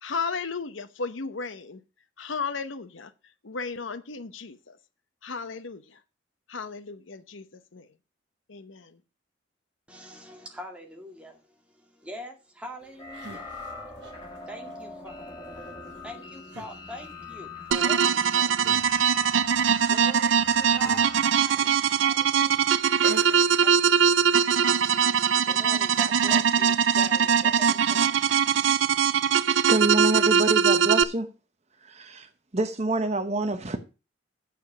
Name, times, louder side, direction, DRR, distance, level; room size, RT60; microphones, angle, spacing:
voice 1, 0.0-1.8 2.2-3.1 3.4-4.8 5.2-6.0 6.5-7.9 8.5-9.0, left 4 dB, 90° left, 0.9 m, -35 dB
voice 2, 9.9-13.5 14.5-15.3 16.0-18.5 19.9-22.8 23.6-24.2 25.0-28.3, equal, 5° right, 2.1 m, -44 dB
sound 1, 12.8-24.3, right 3 dB, 65° right, 1.4 m, -47 dB
sound 2, 13.0-21.2, left 3 dB, 25° left, 2.5 m, -42 dB
sound 3, 17.7-31.0, right 7 dB, 85° right, 0.5 m, -22 dB
voice 3, 29.7-31.3 31.8-33.8, right 2 dB, 35° right, 1.0 m, -27 dB
8.4 x 7.0 x 6.0 m
head